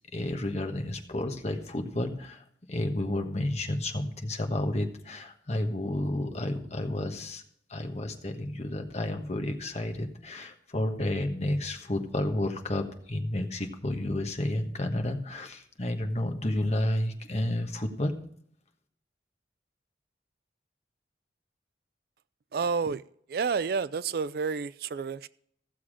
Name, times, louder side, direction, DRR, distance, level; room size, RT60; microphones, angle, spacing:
voice 1, 0.1-7.4 7.7-18.2, left 1 dB, 40° left, 5 dB, 1.3 m, -31 dB
voice 2, 22.5-23.0 23.3-25.3, right 5 dB, 55° right, 18 dB, 0.4 m, -30 dB
15.0 x 7.2 x 4.9 m, 0.66 s
head